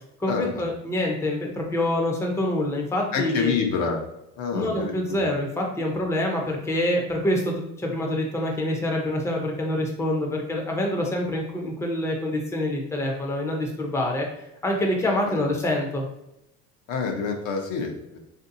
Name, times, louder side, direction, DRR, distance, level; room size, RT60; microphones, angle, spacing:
voice 1, 0.2-3.5 4.5-14.3 14.6-16.0, left 1 dB, 10° left, 0 dB, 0.6 m, -26 dB
voice 2, 3.1-4.0 4.4-5.3 15.3-15.5 16.9-18.2, left 5 dB, 70° left, 2 dB, 0.8 m, -27 dB
3.5 x 2.7 x 2.6 m, 0.85 s
supercardioid pair, 100°, 33 cm